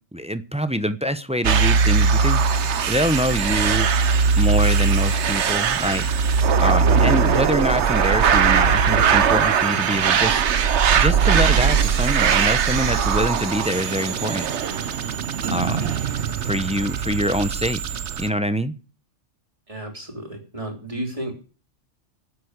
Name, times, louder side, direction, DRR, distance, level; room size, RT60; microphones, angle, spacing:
voice 1, 0.1-2.6 2.9-3.9 4.4-6.0 6.6-10.4 10.9-14.5 15.5-16.0 16.4-17.8 18.2-18.7, equal, 5° right, 0.7 m, -25 dB
sound 1, 1.4-18.3, right 6 dB, 70° right, 1.2 m, -20 dB
sound 2, 7.2-13.7, right 4 dB, 90° right, 3.7 m, -42 dB
voice 2, 19.7-21.4, right 1 dB, 25° right, 3.4 m, -32 dB
11.5 x 8.2 x 8.1 m
omnidirectional pair, 1.3 m